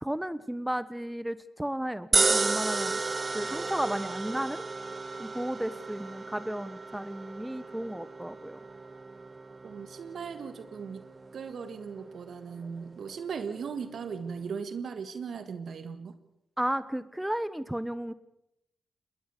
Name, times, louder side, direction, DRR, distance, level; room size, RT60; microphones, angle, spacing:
voice 1, 0.0-3.0 3.3-4.6 5.2-8.7 16.6-18.1, right 1 dB, 10° right, 16 dB, 1.2 m, -33 dB
sound 1, 2.1-14.5, right 3 dB, 40° right, 0.8 m, -34 dB
voice 2, 9.6-11.0 11.3-16.2, right 6 dB, 65° right, 10 dB, 1.6 m, -38 dB
21.0 x 20.5 x 7.0 m, 0.81 s
supercardioid pair, 45°, 0 cm